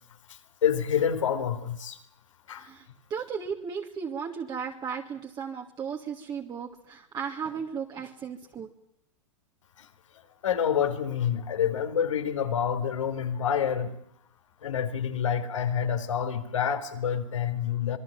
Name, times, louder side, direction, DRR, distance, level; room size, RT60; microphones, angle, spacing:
voice 1, 0.6-2.0 2.5-2.7 10.4-14.0 14.6-18.0, left 8 dB, 75° left, 7 dB, 3.9 m, -27 dB
voice 2, 3.1-8.7, right 6 dB, 25° right, 1 dB, 2.8 m, -35 dB
26.5 x 21.5 x 7.4 m, 0.75 s
hypercardioid pair, 105°, 16 cm